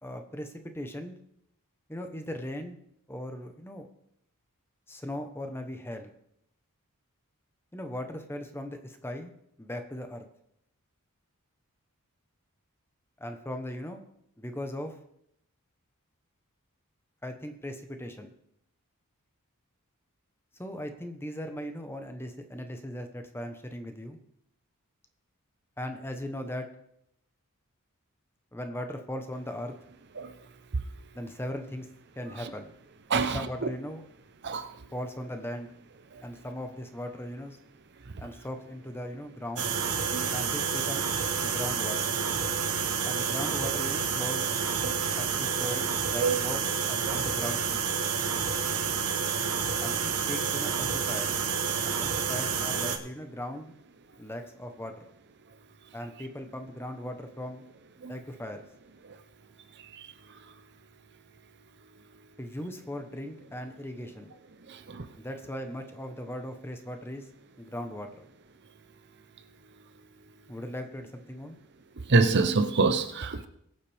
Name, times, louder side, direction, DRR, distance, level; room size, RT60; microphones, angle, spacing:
voice 1, 0.0-1.1 1.9-2.8 3.1-3.9 4.9-6.1 7.7-9.3 9.6-10.3 13.2-14.0 14.4-15.0 17.2-18.3 20.6-24.2 25.8-26.7 28.5-29.7 31.1-31.9 32.1-32.7 33.1-34.0 34.9-35.7 36.2-37.6 38.2-39.8 40.3-41.1 41.4-42.1 43.1-44.5 45.2-46.6 46.9-47.8 49.8-51.3 51.8-53.7 54.2-55.0 55.9-57.6 58.1-58.7 62.4-64.3 65.2-67.3 67.6-68.3 70.5-71.6, left 1 dB, 10° left, 1.0 m, -38 dB
voice 2, 33.1-33.4 34.4-34.7 40.1-40.2 44.8-45.0 46.2-46.4 47.1-47.2 58.0-58.1 60.0-60.1 64.7-65.0 72.1-73.5, right 4 dB, 50° right, 0.8 m, -25 dB
sound 1, 39.6-53.0, right 6 dB, 75° right, 1.2 m, -29 dB
21.5 x 7.4 x 3.5 m
head